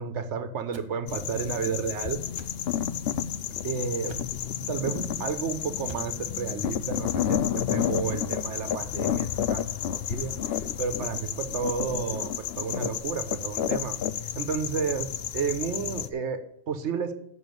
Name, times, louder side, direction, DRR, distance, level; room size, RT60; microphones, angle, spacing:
voice 1, 0.0-2.2 3.6-4.2 4.7-9.7 9.9-14.0 14.3-17.1, right 5 dB, 75° right, 8 dB, 1.3 m, -32 dB
sound 1, 0.7-0.9 2.3-2.5 4.0-4.4 5.8-6.2, right 3 dB, 30° right, 0.6 m, -44 dB
sound 2, 1.1-16.1, left 9 dB, 65° left, 0.8 m, -31 dB
7.2 x 6.1 x 7.8 m, 0.74 s
omnidirectional pair, 1.2 m